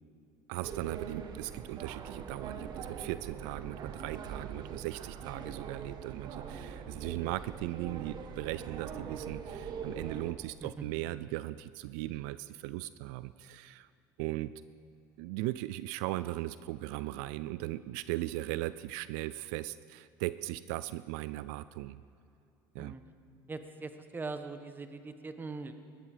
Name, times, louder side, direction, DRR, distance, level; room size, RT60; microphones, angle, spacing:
voice 1, 0.5-13.9 14.2-14.5 15.2-22.0 22.7-22.9, right 17 dB, 80° right, 15 dB, 0.4 m, -38 dB
sound 1, 0.6-10.3, right 6 dB, 50° right, 1.4 m, -43 dB
voice 2, 23.5-25.7, right 3 dB, 20° right, 8 dB, 1.3 m, -41 dB
19.0 x 13.5 x 5.0 m, 2.7 s
supercardioid pair, 95°, 9 cm